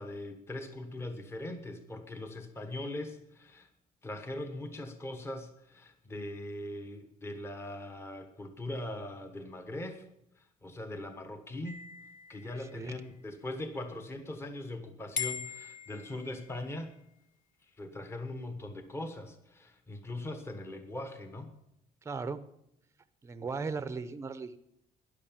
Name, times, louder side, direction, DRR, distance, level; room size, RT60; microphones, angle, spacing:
voice 1, 0.0-3.7 4.0-10.0 10.6-11.8 12.3-16.9 17.8-21.5, left 1 dB, 15° left, 8 dB, 1.2 m, -41 dB
sound 1, 11.6-13.2 15.2-16.7, left 7 dB, 60° left, 1.4 m, -41 dB
voice 2, 22.0-22.5 23.2-24.6, right 4 dB, 20° right, 12 dB, 0.7 m, -37 dB
13.0 x 10.5 x 7.3 m, 0.79 s
cardioid pair, 170°, 16 cm